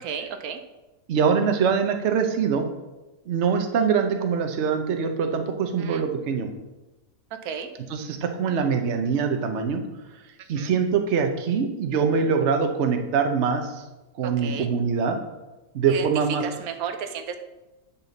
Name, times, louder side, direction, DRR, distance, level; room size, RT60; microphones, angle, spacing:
voice 1, 0.0-0.6 5.8-6.0 7.4-7.7 10.4-10.7 14.2-14.7 15.9-16.1 16.4-17.4, right 7 dB, 85° right, 7 dB, 1.2 m, -33 dB
voice 2, 1.1-2.6 3.3-6.5 7.9-9.8 10.5-13.6 14.2-15.2 15.7-16.4, right 6 dB, 55° right, 5 dB, 1.0 m, -23 dB
8.9 x 5.7 x 4.0 m, 1.0 s
omnidirectional pair, 1.5 m